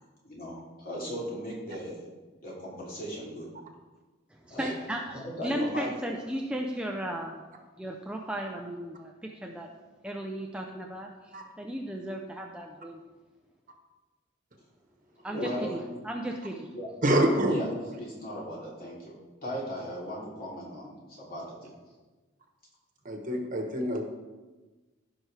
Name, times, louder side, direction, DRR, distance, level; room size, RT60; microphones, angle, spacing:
voice 1, 0.2-2.0 2.4-3.4 4.5-4.7 5.1-6.1 15.3-16.0 16.7-16.9 17.5-19.1 19.4-21.7, equal, 50° left, -5 dB, 3.1 m, -37 dB
voice 2, 4.3-7.4 7.8-9.7 10.0-13.0 15.2-16.7, right 1 dB, 5° right, 0 dB, 0.6 m, -35 dB
voice 3, 17.0-17.6 23.0-24.2, right 1 dB, 45° right, 3 dB, 1.2 m, -26 dB
15.5 x 5.8 x 3.4 m, 1.2 s
head